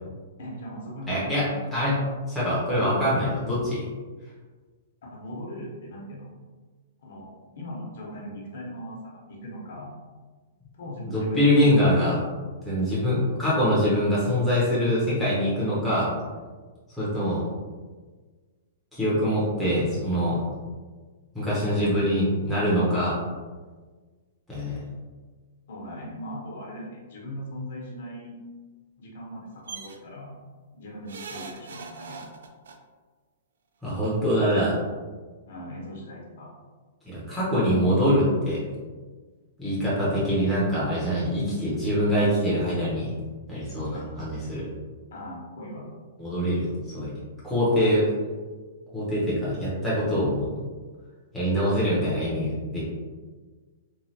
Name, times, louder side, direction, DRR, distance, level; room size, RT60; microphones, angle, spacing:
voice 1, 0.4-1.7 5.0-6.3 7.0-7.3 7.5-10.0 10.8-11.8 17.1-17.4 25.7-28.3 29.0-30.4 30.7-32.3 35.5-36.5 43.8-44.2 45.1-45.8, equal, 55° left, -3 dB, 0.8 m, -39 dB
voice 2, 1.1-2.0 2.3-3.9 11.1-12.1 12.7-16.1 17.0-17.4 18.9-20.4 21.3-23.2 24.5-24.8 33.8-34.8 37.0-38.6 39.6-43.1 43.5-44.6 46.2-47.1 47.4-48.1 48.9-50.5 51.3-52.8, equal, ahead, -11 dB, 0.5 m, -24 dB
sound 1, 29.7-30.0 31.1-32.8 33.9-34.0 34.3-34.4, right 4 dB, 85° right, 0.3 m, -40 dB
3.1 x 2.1 x 2.7 m, 1.4 s
hypercardioid pair, 180°, 0 cm